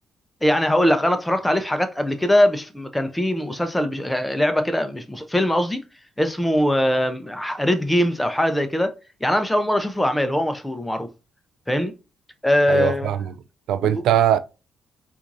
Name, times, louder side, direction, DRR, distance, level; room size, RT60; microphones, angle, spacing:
voice 1, 0.4-5.8 6.2-8.9 9.2-11.1 11.7-11.9 12.4-13.2 13.9-14.0, left 1 dB, 5° left, 0.6 m, -21 dB
voice 2, 12.7-13.2 13.7-14.4, right 10 dB, 80° right, 0.3 m, -20 dB
4.4 x 2.6 x 2.6 m
cardioid pair, 90°, 0 cm